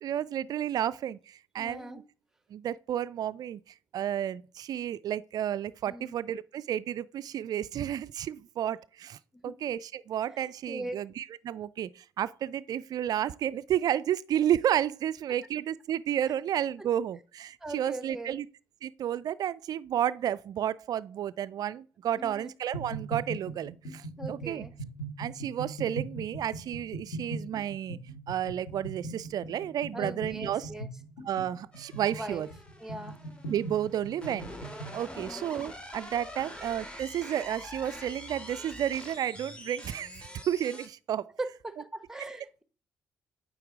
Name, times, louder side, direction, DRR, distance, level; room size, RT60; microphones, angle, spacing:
voice 1, 0.0-2.0 2.5-3.6 3.9-9.2 9.4-18.5 18.8-24.6 25.2-28.0 28.3-30.7 31.2-32.5 33.5-34.5 34.9-41.3, right 10 dB, 50° right, 0.3 m, -32 dB
voice 2, 1.6-2.0 5.9-6.1 9.3-9.5 10.3-11.0 16.8-16.9 17.6-18.4 22.2-22.5 24.2-24.7 29.9-30.9 32.1-32.4 32.8-33.2 35.1-35.4 41.4-42.6, right 2 dB, 5° right, 0.8 m, -40 dB
sound 1, 22.7-35.0, right 2 dB, 75° left, 1.6 m, -40 dB
sound 2, 31.7-40.9, equal, 15° left, 1.5 m, -45 dB
9.1 x 3.5 x 3.6 m
figure-of-eight pair, 40°, 8 cm